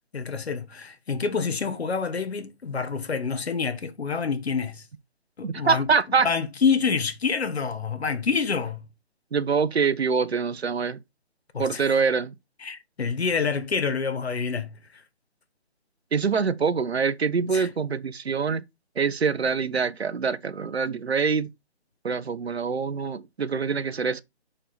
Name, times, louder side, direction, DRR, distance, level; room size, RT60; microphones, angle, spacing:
voice 1, 0.1-4.8 5.4-5.9 6.2-8.8 11.5-12.0 12.6-15.0 17.5-17.7, left 5 dB, 70° left, 1.6 m, -27 dB
voice 2, 5.4-6.3 9.3-11.0 11.6-12.3 16.1-18.6 19.0-21.5 22.0-24.2, right 5 dB, 70° right, 1.1 m, -25 dB
6.6 x 5.6 x 4.2 m
figure-of-eight pair, 160°, 33 cm